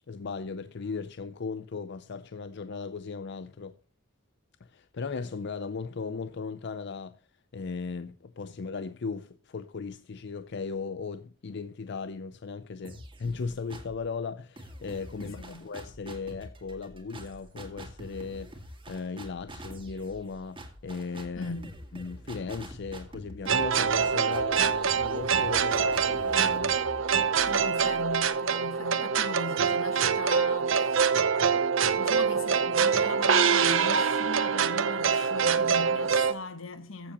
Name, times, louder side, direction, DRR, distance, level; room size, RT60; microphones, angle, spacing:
voice 1, 0.1-3.8 4.6-7.2 7.5-21.5 21.9-26.8, left 4 dB, 60° left, 0.5 m, -37 dB
sound 1, 12.8-14.1 14.6-28.3, right 1 dB, 25° right, 2.1 m, -46 dB
voice 2, 15.2-15.6 21.4-21.7 27.4-31.4 31.7-37.1, left 3 dB, 80° left, 1.3 m, -39 dB
sound 2, 23.5-36.3, right 6 dB, 70° right, 0.8 m, -25 dB
15.0 x 7.4 x 2.9 m
head